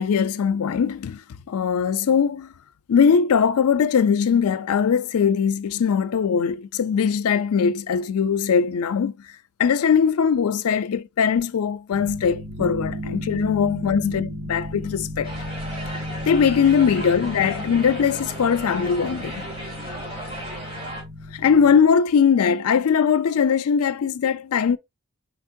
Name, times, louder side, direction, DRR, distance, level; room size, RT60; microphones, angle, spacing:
voice 1, 0.0-2.5 2.9-9.2 9.6-15.3 16.3-19.5 21.3-24.8, left 6 dB, 90° left, 0.4 m, -20 dB
sound 1, 11.9-21.8, equal, 80° right, 1.7 m, -34 dB
sound 2, 15.2-21.0, right 1 dB, 25° right, 2.6 m, -35 dB
4.4 x 4.1 x 2.6 m
head